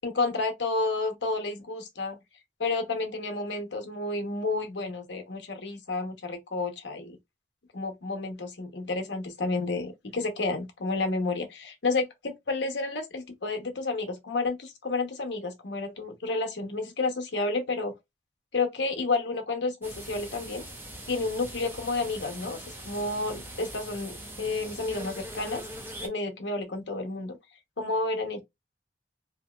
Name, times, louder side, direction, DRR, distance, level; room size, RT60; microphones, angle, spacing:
voice 1, 0.0-2.2 2.6-7.2 7.7-18.0 18.5-20.7 21.1-25.6 26.0-27.4 27.8-28.4, left 3 dB, 75° left, 0.8 m, -30 dB
sound 1, 19.8-26.1, right 1 dB, 10° right, 0.6 m, -42 dB
2.8 x 2.7 x 2.3 m
head